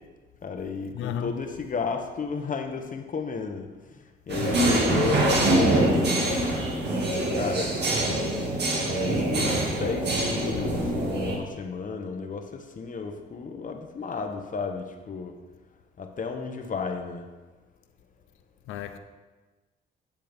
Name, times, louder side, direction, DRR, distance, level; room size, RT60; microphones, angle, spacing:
voice 1, 0.4-6.2 7.4-7.8 8.8-15.4 16.0-17.2, left 5 dB, 40° left, 1.1 m, -33 dB
voice 2, 0.9-1.4 10.5-10.7 18.7-19.0, left 10 dB, 90° left, 0.7 m, -34 dB
sound 1, 4.3-11.4, right 1 dB, 60° right, 2.2 m, -24 dB
10.5 x 7.3 x 3.6 m
cardioid pair, 90°, 20 cm